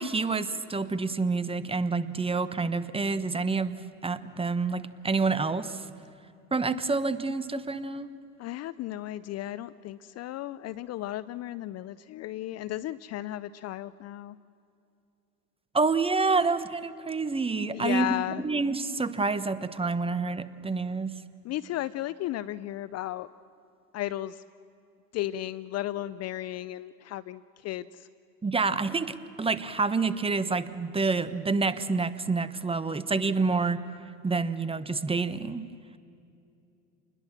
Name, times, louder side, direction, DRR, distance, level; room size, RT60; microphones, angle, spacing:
voice 1, 0.0-5.8 6.5-8.1 15.7-18.1 18.4-21.1 28.4-33.8 34.2-35.7, right 4 dB, 10° right, 14 dB, 1.0 m, -28 dB
voice 2, 8.4-14.4 17.7-18.4 21.4-23.3 23.9-24.4 25.1-28.1, left 14 dB, 35° left, 17 dB, 0.5 m, -34 dB
28.5 x 21.0 x 7.4 m, 2.6 s
hypercardioid pair, 90°, 44 cm